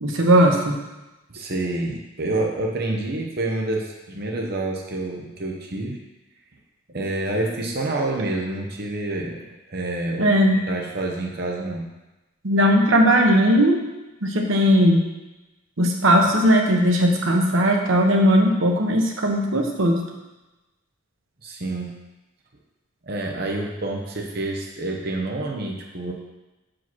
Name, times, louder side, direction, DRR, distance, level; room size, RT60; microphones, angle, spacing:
voice 1, 0.0-0.8 10.2-10.6 12.4-13.8 14.2-15.1 15.8-20.0, equal, 75° right, 1 dB, 1.1 m, -18 dB
voice 2, 1.3-6.0 6.9-9.4 9.7-10.3 10.7-11.9 21.4-21.9 23.0-26.1, right 2 dB, 50° right, 0 dB, 0.9 m, -28 dB
5.7 x 5.1 x 6.1 m, 1.1 s
head